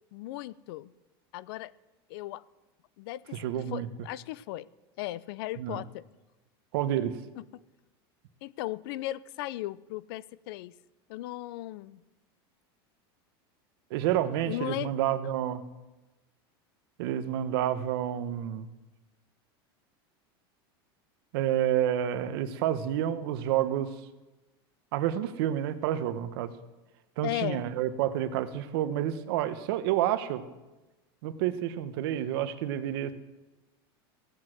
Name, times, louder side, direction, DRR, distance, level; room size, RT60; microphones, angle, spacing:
voice 1, 0.1-0.9 1.3-1.7 2.1-2.4 3.0-4.7 5.0-6.0 7.4-7.6 8.4-10.7 11.1-12.0 14.5-14.9 27.2-27.6, left 16 dB, 70° left, 20 dB, 0.5 m, -37 dB
voice 2, 3.3-3.9 5.6-5.8 6.7-7.2 13.9-15.6 17.0-18.7 21.3-23.9 24.9-26.5 27.2-30.4 31.2-33.1, right 11 dB, 70° right, 11 dB, 1.1 m, -29 dB
16.0 x 8.0 x 7.7 m, 1.1 s
supercardioid pair, 140°, 13 cm